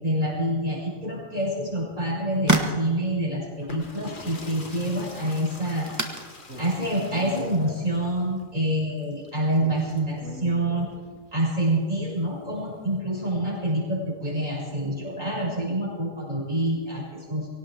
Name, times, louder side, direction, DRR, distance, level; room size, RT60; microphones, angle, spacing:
voice 1, 0.0-5.9 6.6-10.9 11.3-17.5, right 1 dB, 35° right, -6 dB, 6.5 m, -27 dB
sound 1, 1.6-8.9, right 2 dB, 15° right, 1.2 m, -33 dB
sound 2, 3.5-10.2 11.5-12.9, left 3 dB, 35° left, 1.6 m, -44 dB
Speech, 6.4-8.3 9.6-11.3, equal, 75° right, 4.3 m, -43 dB
23.0 x 17.5 x 3.5 m, 1.5 s
omnidirectional pair, 1.4 m